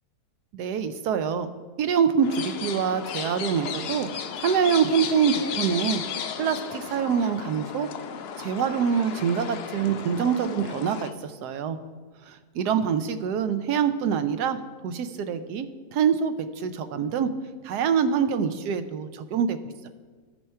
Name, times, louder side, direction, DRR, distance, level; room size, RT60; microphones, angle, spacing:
voice 1, 0.5-1.5 1.8-4.1 4.4-6.0 6.4-7.9 8.4-11.8 12.3-14.6 14.8-17.3 17.6-19.6, right 7 dB, 85° right, 11 dB, 1.2 m, -25 dB
sound 1, 2.2-11.1, left 7 dB, 75° left, 0.5 m, -34 dB
13.0 x 4.5 x 5.6 m, 1.5 s
omnidirectional pair, 1.7 m